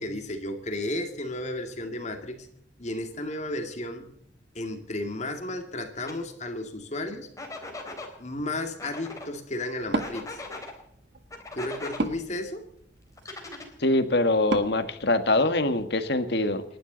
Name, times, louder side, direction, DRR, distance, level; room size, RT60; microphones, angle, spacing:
voice 1, 0.0-2.5 2.8-4.1 4.5-7.3 8.2-10.4 11.5-12.6, left 1 dB, 40° left, 5 dB, 2.3 m, -33 dB
sound 1, 6.1-6.2 7.4-8.1 8.8-9.3 10.0-10.7 11.3-12.0 13.2-14.0, left 2 dB, 20° left, 3.5 m, -39 dB
Wood, 9.8-15.9, right 2 dB, 65° right, 1.5 m, -37 dB
voice 2, 13.8-16.6, left 2 dB, 65° left, 9 dB, 1.7 m, -23 dB
29.5 x 11.5 x 4.0 m, 0.73 s
head